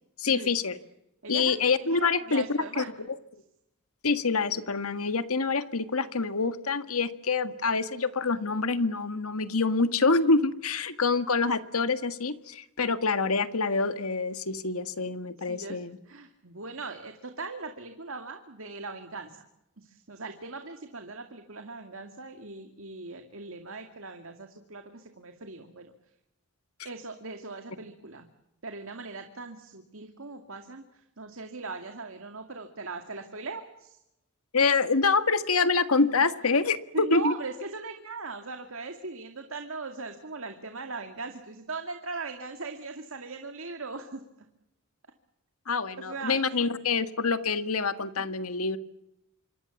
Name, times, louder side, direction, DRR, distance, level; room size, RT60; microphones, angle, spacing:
voice 1, 0.2-0.8 1.3-3.1 4.0-16.0 34.5-37.3 45.7-48.8, left 4 dB, 80° left, 11 dB, 1.7 m, -26 dB
voice 2, 1.2-2.9 15.5-19.5 19.8-25.9 26.8-28.3 28.6-34.0 36.9-44.2 46.0-46.7, right 3 dB, 65° right, 5 dB, 2.3 m, -39 dB
27.0 x 24.5 x 7.2 m, 0.84 s
head